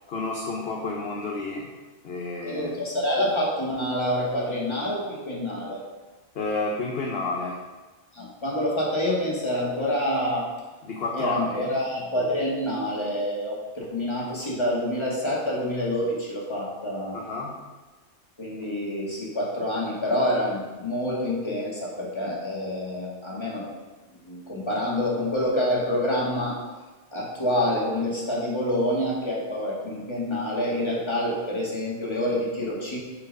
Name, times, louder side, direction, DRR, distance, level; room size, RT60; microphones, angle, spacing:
voice 1, 0.1-1.7 2.0-2.7 6.3-7.6 10.8-11.7 17.1-17.6, left 3 dB, 55° left, -1 dB, 1.1 m, -30 dB
voice 2, 2.4-5.8 8.1-10.5 11.1-17.2 18.4-23.7 24.2-26.6 27.1-33.0, left 1 dB, 25° left, -4 dB, 1.9 m, -27 dB
8.8 x 4.6 x 5.3 m, 1.2 s
omnidirectional pair, 1.2 m